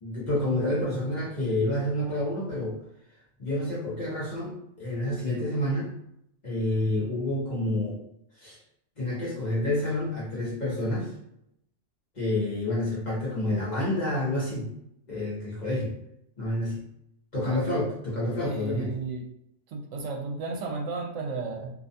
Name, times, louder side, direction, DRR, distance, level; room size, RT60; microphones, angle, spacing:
voice 1, 0.0-2.8 3.4-5.9 6.4-8.0 8.4-8.6 9.0-11.1 12.1-14.7 15.1-15.9 16.4-16.8 17.3-18.9, left 1 dB, 40° left, -6 dB, 0.8 m, -28 dB
voice 2, 18.4-19.2 19.7-21.7, right 4 dB, 75° right, 0 dB, 0.9 m, -33 dB
2.5 x 2.2 x 2.6 m, 0.78 s
omnidirectional pair, 1.3 m